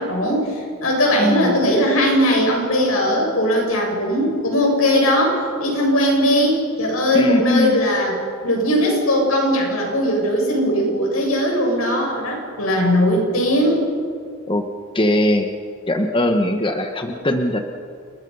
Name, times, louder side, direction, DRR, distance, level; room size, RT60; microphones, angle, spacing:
voice 1, 0.0-8.1 8.4-13.9, equal, 85° left, 0 dB, 7.4 m, -19 dB
voice 2, 1.2-1.6 7.1-7.8 14.5-14.6 14.9-15.5 15.9-17.6, left 1 dB, 25° left, 5 dB, 1.2 m, -20 dB
29.0 x 21.5 x 5.6 m, 2.2 s
head